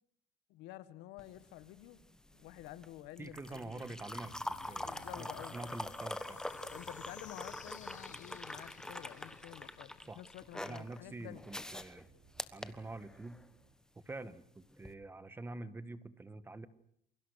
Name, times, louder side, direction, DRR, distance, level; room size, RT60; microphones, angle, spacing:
voice 1, 0.5-2.0 2.3-4.0 4.7-5.7 6.7-11.5, left 15 dB, 85° left, 1.6 m, -50 dB
sound 1, 1.2-13.5 14.7-14.9, left 1 dB, 5° left, 1.3 m, -45 dB
voice 2, 3.2-4.3 4.7-6.4 10.1-10.2 10.6-12.1 12.5-13.4 14.0-16.7, right 2 dB, 15° right, 1.2 m, -46 dB
sound 2, 3.8-10.7, left 11 dB, 45° left, 1.1 m, -57 dB
sound 3, 4.0-13.7, right 8 dB, 75° right, 5.9 m, -67 dB
28.5 x 23.0 x 6.5 m
cardioid pair, 160°, 17 cm